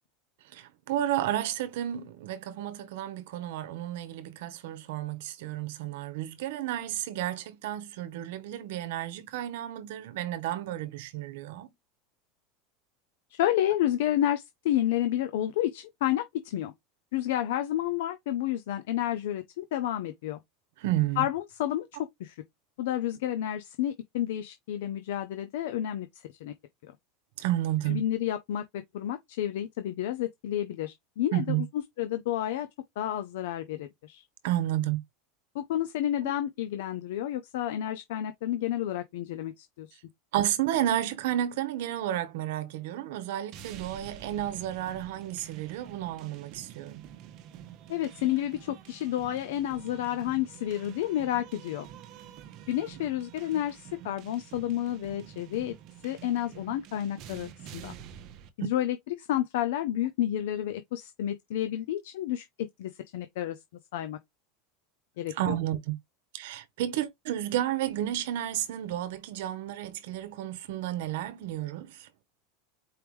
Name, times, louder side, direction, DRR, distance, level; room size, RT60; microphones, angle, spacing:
voice 1, 0.5-11.7 20.8-21.2 27.4-28.0 31.3-31.6 34.4-35.0 40.3-47.0 58.6-58.7 65.3-66.0 66.3-72.1, right 12 dB, 70° right, 0.9 m, -31 dB
voice 2, 13.4-16.7 17.1-20.4 21.2-21.9 22.2-22.3 22.8-26.1 26.4-26.5 27.9-28.6 28.9-31.7 32.0-32.7 33.0-34.2 35.5-40.0 47.9-51.8 52.7-55.7 56.0-57.9 58.6-63.6 63.9-64.2 65.2-65.6, left 12 dB, 75° left, 0.5 m, -30 dB
sound 1, 43.5-58.5, right 10 dB, 45° right, 0.8 m, -48 dB
4.7 x 3.5 x 3.1 m
supercardioid pair, 155°, 0 cm